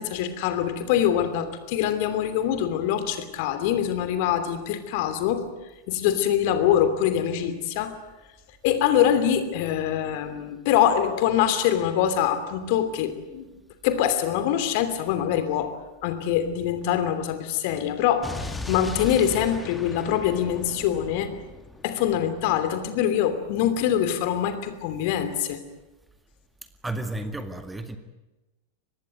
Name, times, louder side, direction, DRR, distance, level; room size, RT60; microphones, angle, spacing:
voice 1, 0.0-5.4 5.9-8.0 8.6-13.5 13.8-15.7 16.0-21.3 21.8-25.6, left 10 dB, 50° left, 10 dB, 2.9 m, -24 dB
Explosion, 18.2-22.3, left 3 dB, 10° left, 2.2 m, -37 dB
voice 2, 26.8-28.0, right 2 dB, 10° right, 8 dB, 2.0 m, -32 dB
24.5 x 20.0 x 9.2 m, 1.0 s
figure-of-eight pair, 90°, 0 cm